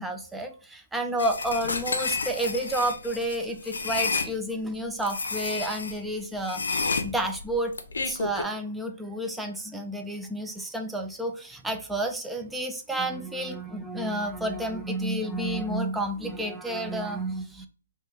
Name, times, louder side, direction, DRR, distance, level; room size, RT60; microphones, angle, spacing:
voice 1, 0.0-7.7 8.0-17.7, right 1 dB, 5° right, 4 dB, 0.4 m, -30 dB
sound 1, 1.2-4.3 5.0-6.0 6.4-8.4, left 4 dB, 85° left, 0.5 m, -30 dB
3.3 x 2.2 x 2.7 m, 0.39 s
hypercardioid pair, 150°, 0 cm